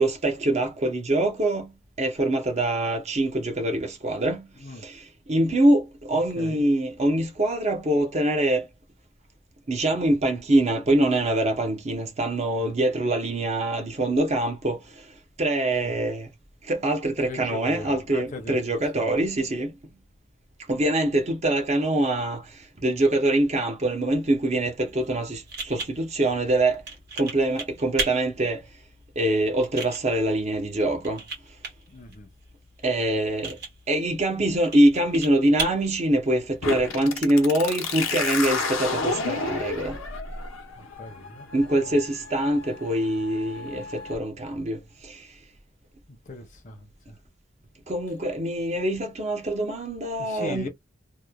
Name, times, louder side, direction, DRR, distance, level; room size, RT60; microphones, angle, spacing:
voice 1, 0.0-1.7 2.0-4.5 4.8-8.7 9.7-14.8 15.4-16.3 16.6-19.7 20.7-22.5 22.8-26.8 27.2-28.6 29.2-31.2 32.8-33.6 33.9-40.0 41.5-45.3 47.9-50.7, right 1 dB, 35° right, 0.7 m, -24 dB
voice 2, 6.1-6.6 12.6-12.7 15.8-15.9 17.2-18.6 18.9-19.2 31.9-32.3 40.7-41.9 46.2-47.2 50.2-50.7, left 2 dB, 40° left, 0.6 m, -39 dB
sound 1, 24.9-36.9, right 4 dB, 55° right, 1.2 m, -38 dB
sound 2, 36.6-44.1, left 4 dB, 80° left, 0.8 m, -31 dB
3.0 x 2.1 x 2.2 m
head